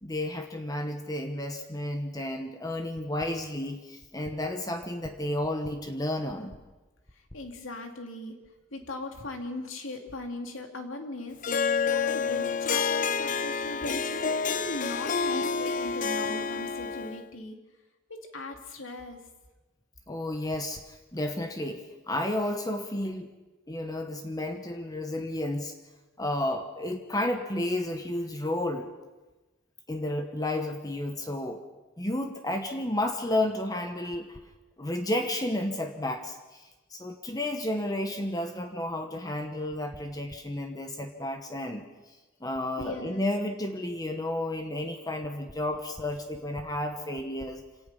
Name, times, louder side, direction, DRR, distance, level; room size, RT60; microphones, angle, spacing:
voice 1, 0.0-6.6 20.1-21.8 22.1-23.3 23.7-25.7 26.2-28.9 29.9-31.6 32.0-34.4 34.8-36.7 36.9-41.9 42.4-47.6, left 1 dB, 20° left, 6 dB, 1.1 m, -32 dB
voice 2, 7.3-8.4 8.7-11.4 11.8-17.6 18.1-19.2 42.8-43.2, left 2 dB, 85° left, 4 dB, 2.6 m, -38 dB
Harp, 11.4-17.2, left 5 dB, 40° left, 0.6 m, -29 dB
26.5 x 18.0 x 5.6 m, 1.2 s
head